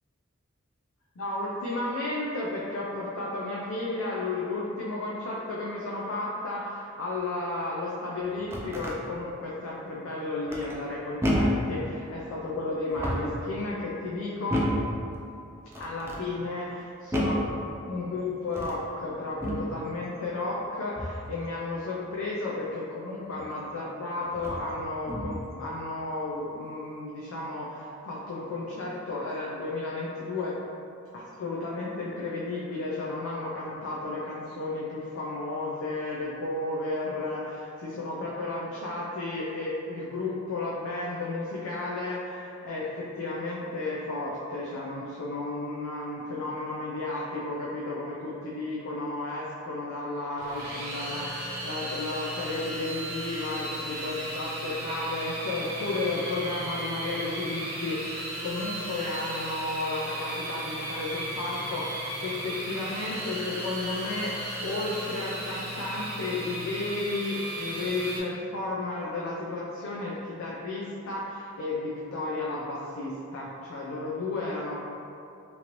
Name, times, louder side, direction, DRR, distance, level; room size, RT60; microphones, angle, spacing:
voice 1, 1.2-14.6 15.8-17.4 17.8-30.6 31.1-64.3 64.6-74.8, left 2 dB, 75° left, -5 dB, 0.4 m, -33 dB
sound 1, 8.2-9.0 10.5-10.9 11.2-11.7 12.8-13.4 14.5-14.9 15.7-16.2 17.1-17.5 18.5-18.8 19.4-19.7 20.9-21.3 23.4-23.5 24.3-24.7 25.1-25.5, equal, 10° right, 0.3 m, -29 dB
sound 2, 50.4-68.2, right 1 dB, 50° right, 0.8 m, -35 dB
3.0 x 2.5 x 2.9 m, 2.6 s
head